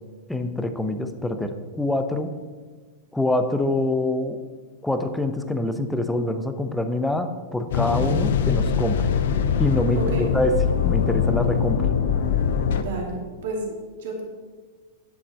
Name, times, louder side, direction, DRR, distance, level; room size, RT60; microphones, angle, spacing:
voice 1, 0.3-2.3 3.1-4.4 4.8-9.1 9.6-10.6 10.8-11.9, left 1 dB, 5° left, 8 dB, 0.8 m, -25 dB
sound 1, 7.7-12.8, left 7 dB, 60° left, 0.7 m, -22 dB
voice 2, 9.9-10.3 12.7-14.2, right 2 dB, 55° right, -1 dB, 2.5 m, -31 dB
10.0 x 7.7 x 4.3 m, 1.5 s
figure-of-eight pair, 95°, 0 cm